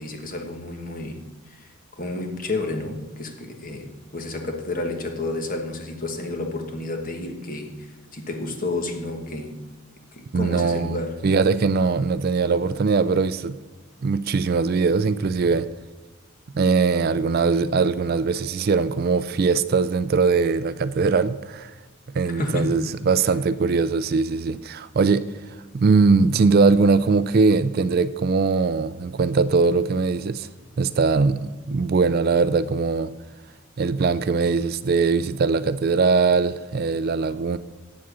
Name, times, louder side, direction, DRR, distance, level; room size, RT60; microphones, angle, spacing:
voice 1, 0.0-9.5 10.1-11.2 22.3-22.9, left 2 dB, 40° left, 1.2 m, -31 dB
voice 2, 10.3-11.0 11.2-13.6 14.0-15.7 16.5-21.7 22.1-25.3 25.7-30.5 30.8-33.1 33.8-37.6, right 4 dB, 45° right, 0.3 m, -21 dB
8.4 x 7.5 x 6.1 m
head